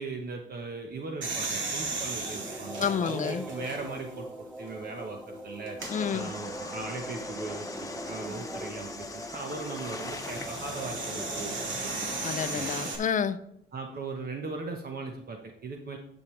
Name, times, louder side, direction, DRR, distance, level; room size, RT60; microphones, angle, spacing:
voice 1, 0.0-5.8 6.1-11.9 12.5-12.7 13.7-16.0, right 3 dB, 50° right, 3 dB, 1.1 m, -39 dB
sound 1, 1.2-4.1 4.7-4.8 5.7-5.9 8.1-13.0, right 3 dB, 70° right, 2.3 m, -36 dB
sound 2, 2.2-11.8, equal, ahead, 0.7 m, -41 dB
voice 2, 2.8-3.5 5.9-6.3 12.2-13.4, left 7 dB, 40° left, 12 dB, 0.6 m, -29 dB
sound 3, 5.8-12.8, left 3 dB, 15° left, 1.1 m, -42 dB
10.5 x 7.3 x 3.3 m, 0.73 s
cardioid pair, 90°, 20 cm